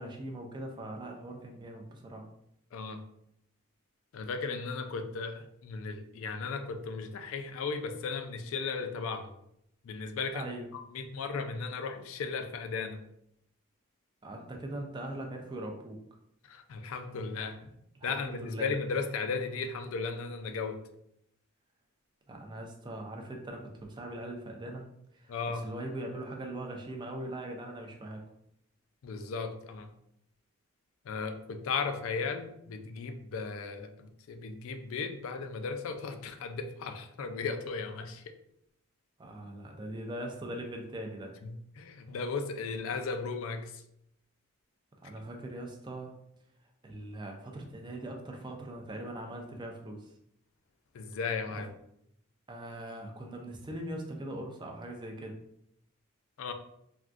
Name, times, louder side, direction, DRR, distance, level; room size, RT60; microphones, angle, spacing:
voice 1, 0.0-2.3 10.3-10.7 14.2-16.0 18.0-18.7 22.3-24.9 25.1-28.2 39.2-41.3 45.0-46.1 46.8-50.1 52.5-55.4, right 1 dB, 20° right, 2 dB, 0.4 m, -41 dB
voice 2, 2.7-3.0 4.1-9.3 9.8-10.5 10.9-13.0 16.4-17.7 18.0-20.8 25.3-25.7 29.0-29.9 31.0-38.2 41.4-43.8 50.9-51.7 56.4-56.5, left 4 dB, 70° left, 7 dB, 0.3 m, -36 dB
3.5 x 2.2 x 2.5 m, 0.75 s
head